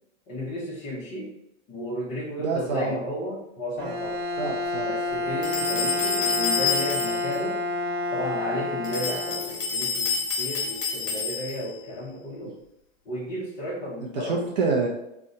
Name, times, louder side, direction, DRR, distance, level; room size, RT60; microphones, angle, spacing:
voice 1, 0.3-1.3 1.7-4.2 4.8-7.6 8.1-12.6 13.1-14.5, equal, 20° left, -9 dB, 0.7 m, -33 dB
voice 2, 2.4-2.9 4.4-4.9 14.1-14.9, right 4 dB, 35° right, -1 dB, 0.4 m, -26 dB
Bowed string instrument, 3.8-9.9, left 2 dB, 75° right, 0.7 m, -29 dB
sound 1, 5.4-7.4 8.8-11.7, left 5 dB, 55° left, 1.4 m, -28 dB
2.6 x 2.1 x 3.7 m, 0.82 s
hypercardioid pair, 140°, 39 cm